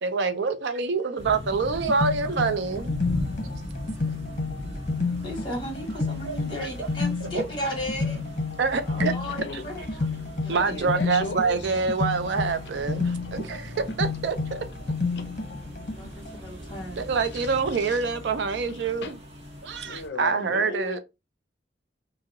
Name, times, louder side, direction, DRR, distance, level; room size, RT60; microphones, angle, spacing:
voice 1, 0.0-2.9 6.2-6.4 6.8-6.9 7.2-7.4 8.6-9.1 10.5-14.6 16.6-16.7 17.0-19.1 19.6-21.0, right 4 dB, 65° right, 0.4 m, -26 dB
sound 1, 1.2-20.1, left 1 dB, 35° right, 0.9 m, -39 dB
sound 2, 1.5-16.4, left 3 dB, 45° left, 0.8 m, -31 dB
voice 2, 5.2-8.2 8.9-10.0 10.4-10.5 15.9-17.0, equal, 25° left, 1.3 m, -35 dB
voice 3, 9.2-9.7 10.1-11.8 13.1-13.3 13.9-14.0 15.2-15.3 16.4-16.5 17.2-18.1 18.5-19.2 19.8-21.0, left 3 dB, 65° left, 0.5 m, -38 dB
sound 3, 10.5-17.7, equal, 5° right, 0.6 m, -45 dB
2.7 x 2.0 x 3.6 m
head